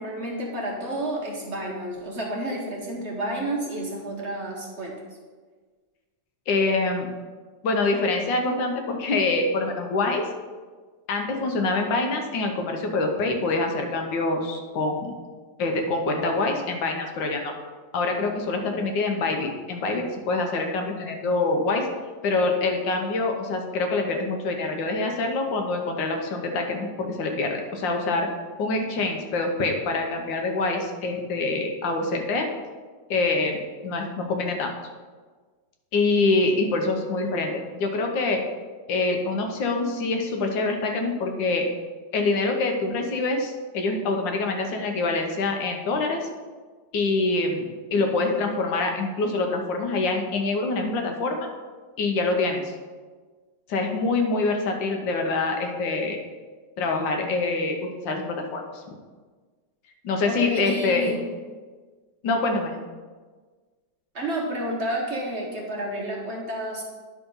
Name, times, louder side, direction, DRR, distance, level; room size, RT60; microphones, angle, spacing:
voice 1, 0.0-4.9 60.3-61.2 64.1-66.8, right 1 dB, 45° right, -2 dB, 1.2 m, -30 dB
voice 2, 6.5-7.1 7.6-10.2 11.1-15.1 15.6-17.5 17.9-21.9 22.2-28.3 28.6-32.5 33.1-33.6 33.8-34.7 35.9-38.4 38.9-41.7 42.1-46.3 46.9-51.5 52.0-52.7 53.7-56.2 56.8-58.8 60.0-61.1 62.2-62.7, left 3 dB, 80° left, 3 dB, 1.7 m, -25 dB
10.0 x 3.7 x 5.4 m, 1.4 s
omnidirectional pair, 2.0 m